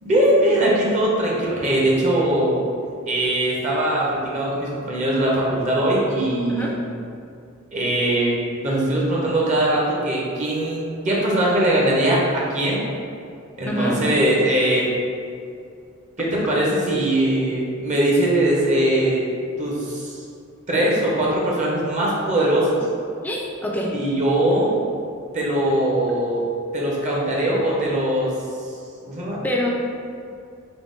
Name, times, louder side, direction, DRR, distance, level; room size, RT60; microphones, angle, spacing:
voice 1, 0.0-2.6 3.1-6.7 7.7-8.3 8.6-12.8 13.6-14.8 16.2-19.2 19.6-20.2 20.7-22.9 23.9-24.8 25.3-26.4 26.7-28.3 29.0-29.4, right 1 dB, 35° right, -4 dB, 0.6 m, -21 dB
voice 2, 13.7-14.0 23.2-23.9 29.4-29.7, left 1 dB, 10° left, -2 dB, 0.3 m, -25 dB
3.6 x 2.2 x 3.7 m, 2.4 s
head